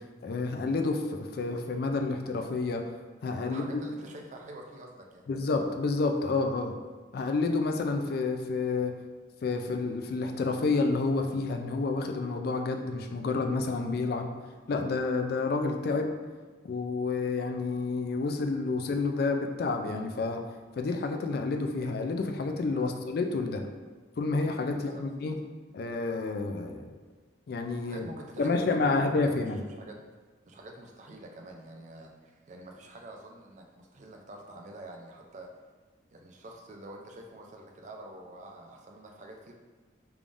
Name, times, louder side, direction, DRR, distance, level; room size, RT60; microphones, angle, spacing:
voice 1, 0.0-2.9 3.2-3.6 5.3-6.8 7.1-8.9 9.4-14.3 14.7-16.1 16.6-20.4 20.8-23.7 24.2-25.4 25.7-26.9 27.5-28.0 28.4-29.6, left 3 dB, 50° left, 4 dB, 0.3 m, -29 dB
voice 2, 3.4-5.3 22.7-23.0 24.7-25.1 27.8-29.5 29.8-30.0 30.5-35.5 36.1-39.5, right 1 dB, 40° right, 2 dB, 0.4 m, -46 dB
3.4 x 3.4 x 2.5 m, 1.4 s
head